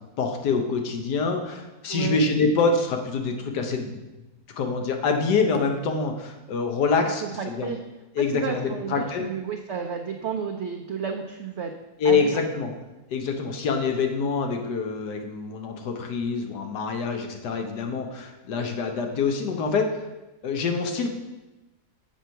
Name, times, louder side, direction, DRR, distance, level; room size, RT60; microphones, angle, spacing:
voice 1, 0.2-3.9 4.6-7.7 8.2-9.2 12.0-12.7 13.1-20.0 20.4-21.1, left 4 dB, 85° left, 4 dB, 1.5 m, -25 dB
voice 2, 1.9-2.2 7.2-7.8 8.2-11.7 12.0-12.4, right 6 dB, 70° right, 4 dB, 0.6 m, -31 dB
7.3 x 4.6 x 5.6 m, 1.0 s
omnidirectional pair, 1.7 m